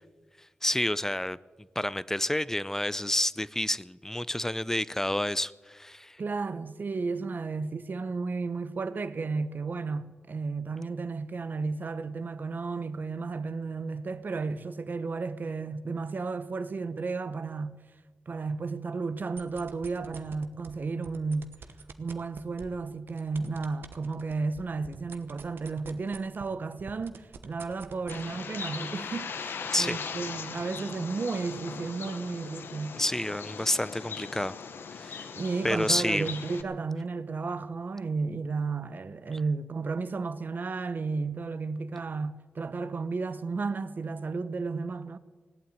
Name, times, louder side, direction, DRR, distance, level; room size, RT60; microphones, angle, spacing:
voice 1, 0.6-1.4 1.8-6.2 29.7-30.1 33.0-34.6 34.9-35.3 35.6-36.3, left 1 dB, 10° left, 0.6 m, -29 dB
voice 2, 6.2-17.8 18.3-21.5 22.0-33.0 35.4-45.2, right 4 dB, 55° right, 0.9 m, -33 dB
sound 1, 19.2-20.7 21.0-26.5 26.8-28.2, right 5 dB, 80° right, 1.1 m, -45 dB
Bird, 28.1-36.6, left 6 dB, 80° left, 1.0 m, -39 dB
18.0 x 8.7 x 9.3 m
cardioid pair, 50°, 4 cm